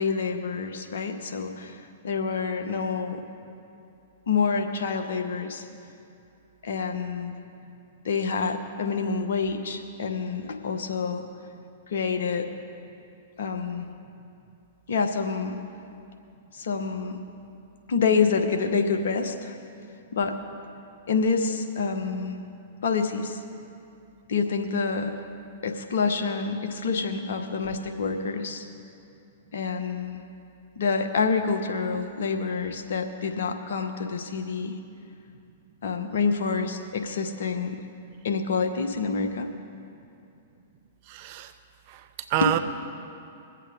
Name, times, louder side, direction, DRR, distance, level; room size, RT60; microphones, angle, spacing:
voice 1, 0.0-3.2 4.3-5.6 6.6-7.3 8.0-11.2 11.9-12.5 13.4-13.9 14.9-15.6 16.5-17.2 17.9-19.5 20.1-20.4 21.1-22.4 22.8-23.4 24.3-25.1 25.6-28.7 29.5-30.2 30.8-34.7 35.8-37.8 38.2-39.5, left 5 dB, 70° left, 6 dB, 1.0 m, -27 dB
voice 2, 41.1-41.5 41.9-42.6, right 13 dB, 50° right, 10 dB, 0.7 m, -28 dB
22.0 x 8.2 x 3.6 m, 2.6 s
hypercardioid pair, 110°, 0 cm